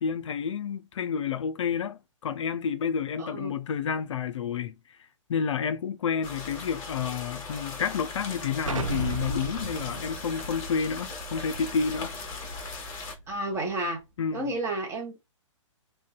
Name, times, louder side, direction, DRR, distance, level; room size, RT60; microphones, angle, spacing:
voice 1, 0.0-4.7 5.3-12.1 14.2-14.5, left 6 dB, 65° left, 0.4 m, -30 dB
voice 2, 3.2-3.5 13.3-14.0 14.3-15.2, right 1 dB, 15° right, 0.8 m, -31 dB
sound 1, 6.2-13.2, left 4 dB, 25° left, 0.9 m, -39 dB
Explosion, 8.6-13.3, right 4 dB, 80° right, 0.5 m, -37 dB
2.6 x 2.2 x 2.2 m
figure-of-eight pair, 125°, 17 cm